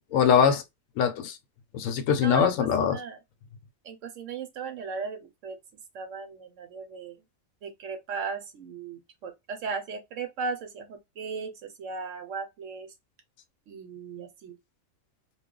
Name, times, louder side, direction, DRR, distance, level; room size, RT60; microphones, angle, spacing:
voice 1, 0.1-0.6 1.0-1.4 1.7-3.0, left 7 dB, 75° left, 0.9 m, -22 dB
voice 2, 2.2-2.5 2.8-3.2 3.8-5.6 5.9-7.2 7.6-11.5 11.8-12.9 13.7-14.6, right 5 dB, 70° right, 0.9 m, -36 dB
2.3 x 2.2 x 3.6 m
omnidirectional pair, 1.4 m